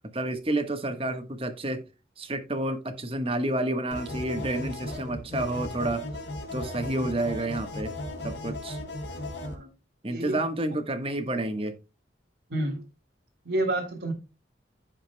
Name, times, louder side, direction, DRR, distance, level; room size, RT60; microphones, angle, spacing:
voice 1, 0.1-1.8 2.2-6.1 6.5-7.9 8.2-8.8 10.0-11.7, right 1 dB, 30° right, 1.3 m, -30 dB
sound 1, 3.9-9.6, left 1 dB, 85° left, 3.2 m, -36 dB
voice 2, 12.5-12.8 13.4-14.1, right 1 dB, 75° right, 1.9 m, -29 dB
15.5 x 5.2 x 2.2 m
head